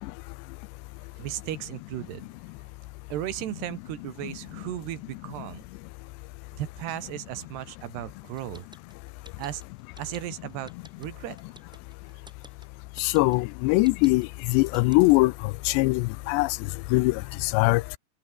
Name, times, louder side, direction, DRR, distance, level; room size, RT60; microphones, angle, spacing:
voice 1, 1.2-2.3 3.1-5.6 6.6-8.7 9.4-9.6 10.0-10.7 11.0-11.4, right 13 dB, 75° right, 3.5 m, -35 dB
sound 1, 8.4-15.3, equal, ahead, 1.3 m, -50 dB
voice 2, 13.0-15.3 15.7-16.5 16.9-18.0, left 23 dB, 85° left, 2.8 m, -22 dB
omnidirectional pair, 4.9 m